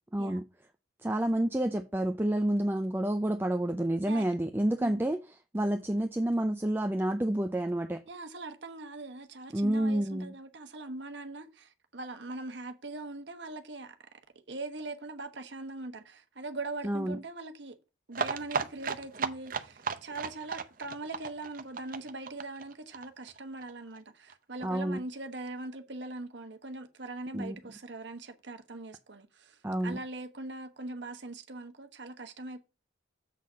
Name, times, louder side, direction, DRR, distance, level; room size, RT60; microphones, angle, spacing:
voice 1, 0.1-0.4 1.0-5.2 5.5-8.0 9.5-10.3 16.8-17.2 24.6-25.0 27.3-27.6 29.6-30.0, right 1 dB, 10° right, 0.4 m, -29 dB
voice 2, 8.1-14.0 14.5-17.8 18.1-32.6, right 2 dB, 60° right, 1.2 m, -41 dB
sound 1, 18.1-23.7 24.0-24.1 24.3-24.4 24.6-24.7, right 5 dB, 45° right, 0.7 m, -35 dB
7.4 x 4.2 x 6.1 m
head